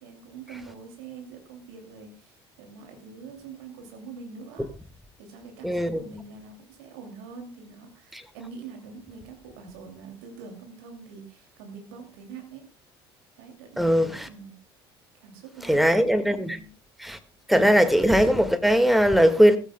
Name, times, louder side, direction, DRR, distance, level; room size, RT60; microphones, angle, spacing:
voice 1, 0.0-4.7 5.2-12.7 13.4-14.6 15.2-16.1 16.4-16.7, right 5 dB, 65° right, 2.7 m, -44 dB
voice 2, 5.6-6.1 8.1-8.2 13.8-14.3 15.6-16.6 17.0-17.2 17.5-19.6, equal, ahead, 1.8 m, -20 dB
16.5 x 15.5 x 2.3 m
figure-of-eight pair, 60°, 13 cm